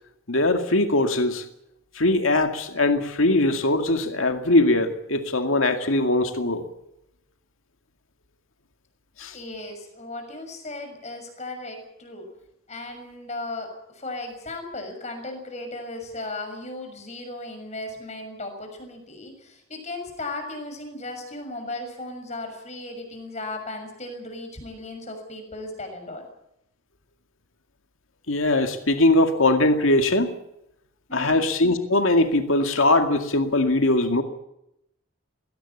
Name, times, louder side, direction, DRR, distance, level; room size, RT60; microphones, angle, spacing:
voice 1, 0.3-1.4 2.0-6.6 9.2-9.4 28.3-30.3 31.1-34.2, left 2 dB, 70° left, 6 dB, 2.1 m, -21 dB
voice 2, 9.3-12.3 12.7-26.3 31.1-31.4, left 2 dB, 30° left, 5 dB, 6.4 m, -36 dB
20.5 x 18.0 x 8.6 m, 0.81 s
head